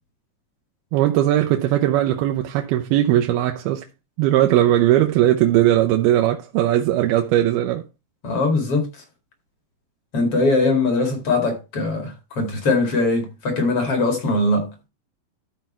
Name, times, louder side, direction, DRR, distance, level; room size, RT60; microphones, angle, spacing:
voice 1, 0.9-3.8 4.2-7.9, right 13 dB, 90° right, 2.7 m, -19 dB
voice 2, 8.2-8.9 10.1-14.7, left 2 dB, 45° left, 2.5 m, -21 dB
13.0 x 4.5 x 4.2 m
omnidirectional pair, 4.3 m